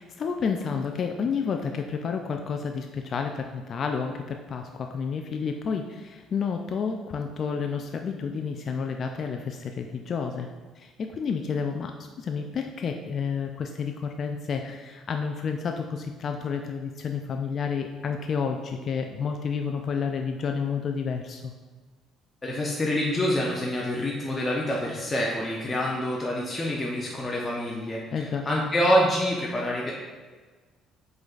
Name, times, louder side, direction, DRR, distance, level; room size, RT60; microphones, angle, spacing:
voice 1, 0.0-10.5 10.8-21.5 28.1-28.5, left 6 dB, 50° left, 4 dB, 0.3 m, -30 dB
voice 2, 22.4-29.9, equal, 25° left, -3 dB, 0.7 m, -26 dB
5.0 x 3.8 x 2.5 m, 1.4 s
supercardioid pair, 75°, 0 cm